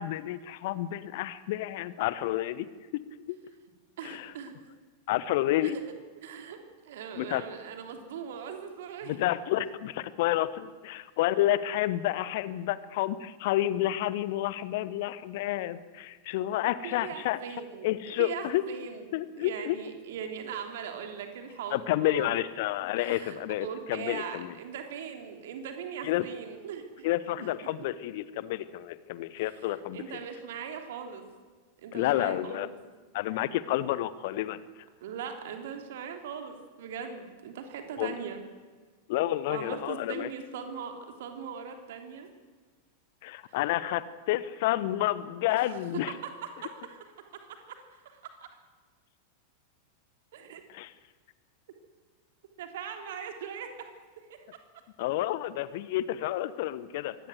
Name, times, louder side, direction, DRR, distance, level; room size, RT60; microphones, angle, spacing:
voice 1, 0.0-2.7 2.9-3.0 3.3-3.4 4.0-4.3 5.1-5.8 7.2-7.4 9.1-17.4 17.8-18.6 19.1-19.8 21.7-24.5 26.0-26.2 27.0-30.0 31.9-32.7 33.1-34.6 38.0-38.2 39.1-40.3 43.2-46.1 50.7-50.9 55.0-57.2, left 14 dB, 50° left, 16 dB, 1.1 m, -30 dB
voice 2, 4.0-4.7 5.6-5.8 6.2-6.6 6.8-9.2 16.8-19.0 19.4-22.4 23.0-27.1 27.4-27.6 29.4-31.2 31.8-32.7 35.0-38.4 39.5-42.3 43.5-43.6 45.6-48.2 50.3-50.6 52.6-54.6, right 7 dB, 55° right, 5 dB, 3.2 m, -40 dB
23.5 x 17.5 x 8.0 m, 1.4 s
figure-of-eight pair, 90°, 0 cm